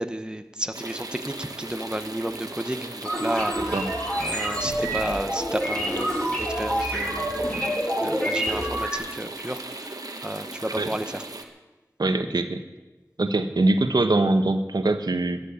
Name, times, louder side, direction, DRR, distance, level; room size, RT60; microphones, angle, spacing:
voice 1, 0.0-3.8 4.2-9.9 10.2-11.2, right 1 dB, 15° right, 8 dB, 1.1 m, -32 dB
sound 1, 0.7-11.4, right 2 dB, 65° right, 1.6 m, -38 dB
sound 2, 3.0-8.9, right 1 dB, 15° left, 6.8 m, -27 dB
voice 2, 3.6-3.9 10.8-10.9 12.0-12.6 13.2-15.4, right 2 dB, 85° right, 8 dB, 1.1 m, -23 dB
13.0 x 11.0 x 8.8 m, 1.1 s
wide cardioid pair, 45°, 7 cm